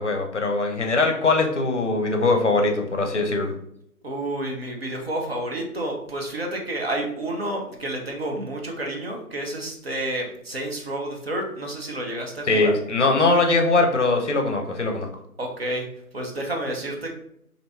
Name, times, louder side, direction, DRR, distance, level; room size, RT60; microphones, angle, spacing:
voice 1, 0.0-3.5 12.5-15.1, left 3 dB, 50° left, 3 dB, 0.6 m, -21 dB
voice 2, 4.0-12.7 15.4-15.9 16.1-17.1, right 1 dB, 45° right, 0 dB, 0.6 m, -30 dB
2.8 x 2.6 x 3.2 m, 0.74 s
figure-of-eight pair, 145°, 45 cm